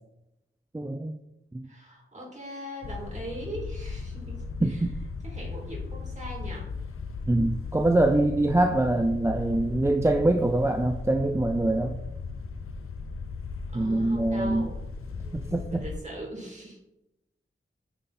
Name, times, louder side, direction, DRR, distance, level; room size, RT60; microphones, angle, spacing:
voice 1, 0.7-1.2 1.5-1.7 4.6-5.0 7.3-12.0 13.7-14.7 15.3-15.8, right 2 dB, 15° right, 5 dB, 0.4 m, -24 dB
voice 2, 1.6-4.8 5.2-6.7 13.7-16.8, right 1 dB, 35° right, -3 dB, 2.7 m, -41 dB
sound 1, 2.8-16.0, left 4 dB, 90° left, 0.5 m, -37 dB
9.0 x 3.6 x 4.2 m, 0.91 s
wide cardioid pair, 90°, 21 cm